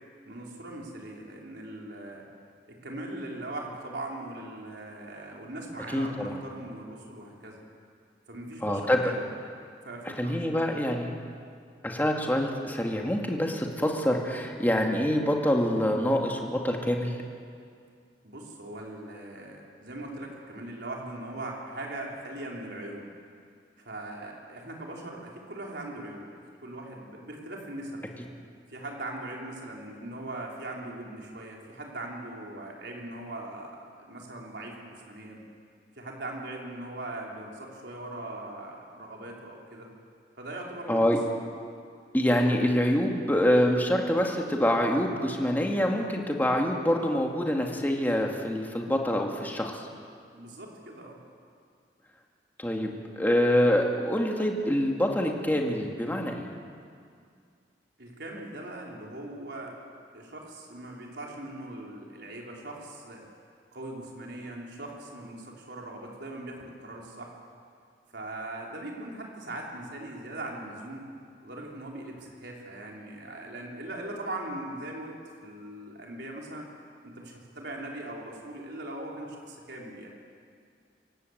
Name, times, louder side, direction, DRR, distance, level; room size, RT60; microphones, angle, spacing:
voice 1, 0.2-2.2 2.7-7.6 8.3-9.2 9.8-10.9 18.2-23.0 23.8-26.3 26.6-28.0 28.7-35.4 36.0-39.9 40.4-41.0 50.3-51.2 58.0-59.7 60.1-63.2 63.7-67.3 68.1-71.1 71.4-76.7 77.0-80.1, right 1 dB, 70° right, -1 dB, 4.3 m, -40 dB
voice 2, 5.9-6.4 8.6-9.0 10.2-11.1 11.8-17.2 40.9-41.2 42.1-49.8 52.6-56.5, equal, 10° left, 1 dB, 2.3 m, -26 dB
26.5 x 17.5 x 8.2 m, 2.2 s
head